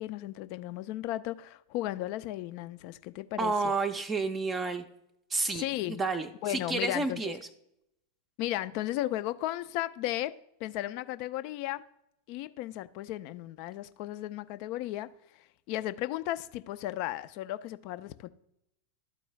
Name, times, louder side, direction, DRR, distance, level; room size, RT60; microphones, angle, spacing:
voice 1, 0.0-3.7 5.5-6.0 6.4-7.3 8.4-11.8 12.3-15.1 15.7-18.3, left 15 dB, 45° left, 14 dB, 0.4 m, -35 dB
voice 2, 3.4-4.8 5.3-7.4, right 3 dB, 20° right, 7 dB, 0.5 m, -30 dB
12.5 x 4.5 x 3.1 m, 0.81 s
figure-of-eight pair, 90°, 0 cm